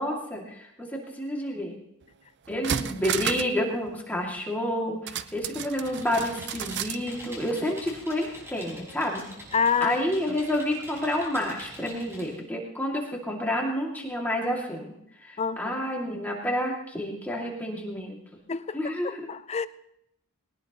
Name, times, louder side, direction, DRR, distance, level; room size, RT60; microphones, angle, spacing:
voice 1, 0.0-1.8 2.5-9.3 9.8-18.2 18.7-19.2, equal, 10° left, -1 dB, 2.4 m, -29 dB
sound 1, 2.0-2.1 2.5-3.6 3.9-4.0 5.1-7.0 7.4-7.5, right 8 dB, 55° right, 0.5 m, -32 dB
Computer keyboard, 5.5-12.4, equal, 10° right, 5.5 m, -45 dB
voice 2, 9.5-10.0 15.4-15.7 18.5-19.7, left 6 dB, 30° left, 13 dB, 0.5 m, -27 dB
20.0 x 18.5 x 3.1 m, 0.79 s
head